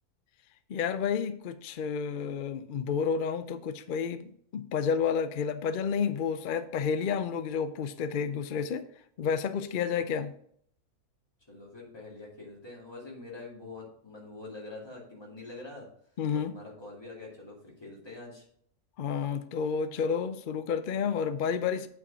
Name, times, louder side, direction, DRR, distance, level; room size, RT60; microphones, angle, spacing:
voice 1, 0.7-8.8 9.2-10.3 16.2-16.6 19.0-21.9, left 6 dB, 70° left, 11 dB, 0.5 m, -30 dB
voice 2, 11.5-15.9 16.3-18.5, left 2 dB, 15° left, -3 dB, 2.4 m, -45 dB
8.4 x 4.7 x 5.5 m, 0.65 s
omnidirectional pair, 1.6 m